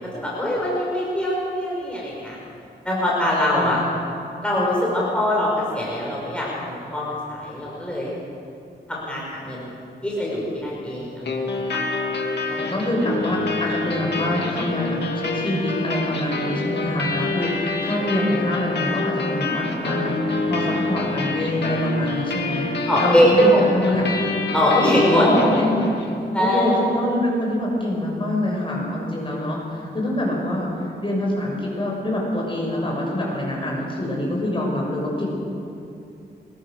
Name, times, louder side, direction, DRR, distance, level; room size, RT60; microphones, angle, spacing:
voice 1, 0.1-2.4 2.8-3.8 4.4-8.1 8.9-9.7 10.0-11.3 11.7-11.8 22.9-24.0 24.5-25.3 26.3-26.8, equal, 5° left, -5 dB, 5.4 m, -22 dB
sound 1, 11.2-26.2, left 3 dB, 75° left, 2.5 m, -27 dB
voice 2, 12.5-22.7 23.0-24.1 24.7-25.9 26.4-30.7 31.0-35.3, left 1 dB, 30° left, -2 dB, 6.7 m, -25 dB
24.5 x 22.0 x 6.6 m, 2.6 s
wide cardioid pair, 135°, 18 cm